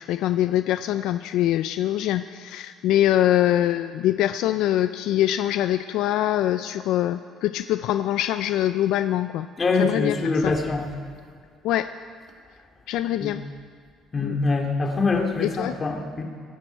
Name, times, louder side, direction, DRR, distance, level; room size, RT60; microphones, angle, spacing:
voice 1, 0.0-9.5 9.8-10.5 11.6-11.9 12.9-13.4 14.2-14.4 15.4-15.8, left 12 dB, 75° left, 11 dB, 0.4 m, -23 dB
voice 2, 9.6-10.9 13.2-13.3 14.1-16.2, left 3 dB, 30° left, 2 dB, 2.4 m, -24 dB
23.0 x 10.5 x 4.5 m, 2.1 s
supercardioid pair, 90°, 0 cm